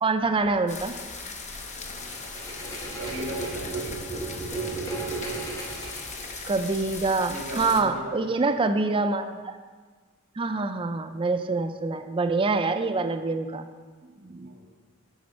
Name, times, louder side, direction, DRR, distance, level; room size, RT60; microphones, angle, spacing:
voice 1, 0.0-0.9 6.5-9.6 10.4-13.7 14.2-14.5, right 3 dB, 25° right, 8 dB, 0.4 m, -26 dB
sound 1, 0.7-7.8, left 4 dB, 35° left, 0.8 m, -39 dB
voice 2, 1.7-4.0 7.2-8.3 10.4-10.6 14.3-14.7, equal, 70° right, -2 dB, 2.4 m, -39 dB
sound 2, 2.0-6.9, right 3 dB, 15° left, 1.4 m, -35 dB
10.5 x 4.2 x 6.1 m, 1.5 s
head